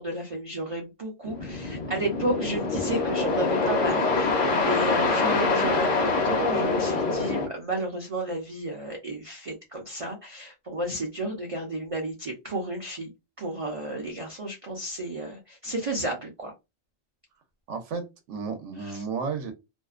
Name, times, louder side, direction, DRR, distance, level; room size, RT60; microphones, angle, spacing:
voice 1, 0.0-13.1 13.4-16.5 18.8-19.0, right 1 dB, 40° right, 0 dB, 0.5 m, -32 dB
sound 1, 1.2-7.5, left 3 dB, 50° left, 0.7 m, -25 dB
voice 2, 17.7-19.5, right 5 dB, 75° right, 6 dB, 1.0 m, -33 dB
2.6 x 2.1 x 2.4 m, 0.23 s
omnidirectional pair, 1.3 m